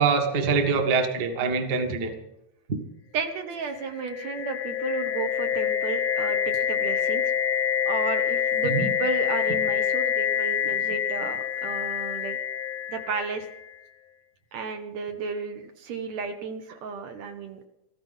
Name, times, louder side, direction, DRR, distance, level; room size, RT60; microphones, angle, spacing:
voice 1, 0.0-2.1 2.7-2.8 8.6-8.9, right 5 dB, 40° right, 5 dB, 1.7 m, -24 dB
voice 2, 3.1-7.3 7.9-12.4 12.9-13.5 14.5-17.7, right 4 dB, 70° right, 5 dB, 2.3 m, -33 dB
sound 1, 3.8-13.6, left 8 dB, 60° left, 1.3 m, -26 dB
14.5 x 14.0 x 5.6 m, 0.88 s
omnidirectional pair, 3.4 m